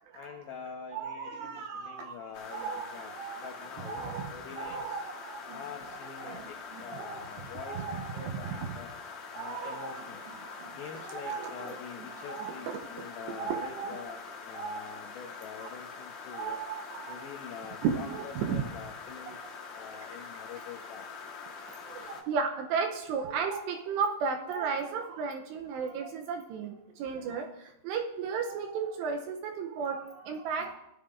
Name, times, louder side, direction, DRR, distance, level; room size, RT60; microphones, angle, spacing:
voice 1, 0.1-5.0 5.5-8.9 9.3-10.3 10.7-16.6 17.1-21.0, left 6 dB, 90° left, 3 dB, 2.0 m, -46 dB
voice 2, 0.9-2.2 2.5-3.5 3.8-5.6 6.0-7.2 7.7-8.7 9.4-11.8 12.3-12.8 13.3-14.0 14.5-14.8 15.6-15.7 16.3-17.3 17.8-18.6 19.3-19.4 21.8-30.8, right 6 dB, 80° right, 5 dB, 2.6 m, -35 dB
sound 1, 2.3-22.2, left 5 dB, 70° left, 1.7 m, -44 dB
18.5 x 13.0 x 2.5 m, 0.86 s
omnidirectional pair, 5.6 m